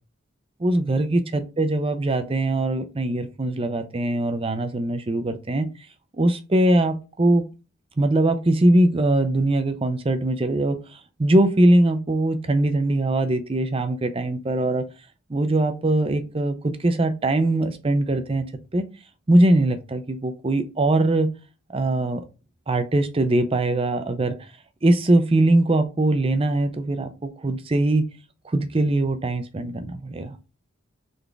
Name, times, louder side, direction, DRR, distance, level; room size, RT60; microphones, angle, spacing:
voice 1, 0.6-5.7 6.1-7.5 8.0-10.8 11.2-14.8 15.3-18.4 18.7-18.8 19.3-21.3 21.7-22.2 22.7-24.4 24.8-28.0 28.5-30.4, right 1 dB, 30° right, 9 dB, 0.5 m, -21 dB
4.0 x 3.5 x 3.3 m, 0.31 s
head